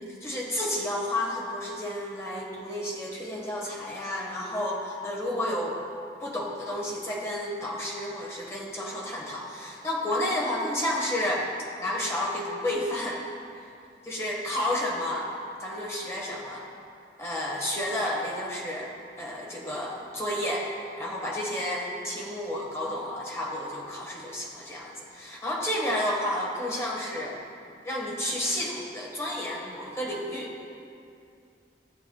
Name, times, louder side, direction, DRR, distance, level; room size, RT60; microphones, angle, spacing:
voice 1, 0.0-5.8 6.2-11.5 11.8-13.2 14.0-15.3 15.6-16.6 17.2-20.7 21.0-27.4 27.8-30.5, left 1 dB, 15° left, -3 dB, 1.4 m, -31 dB
14.5 x 7.7 x 2.3 m, 2.5 s
head